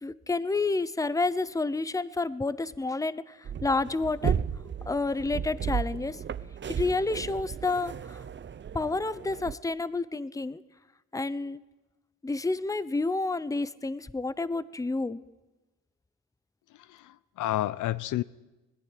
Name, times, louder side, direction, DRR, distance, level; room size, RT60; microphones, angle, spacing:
voice 1, 0.0-4.4 4.9-6.2 6.7-8.2 8.7-10.6 11.1-11.6 12.2-15.2, left 3 dB, 10° left, 17 dB, 0.8 m, -29 dB
sound 1, 3.4-9.6, right 8 dB, 40° right, 0.8 m, -34 dB
voice 2, 16.9-18.2, left 14 dB, 80° left, 19 dB, 0.7 m, -30 dB
20.5 x 14.5 x 9.9 m, 1.1 s
cardioid pair, 90°, 30 cm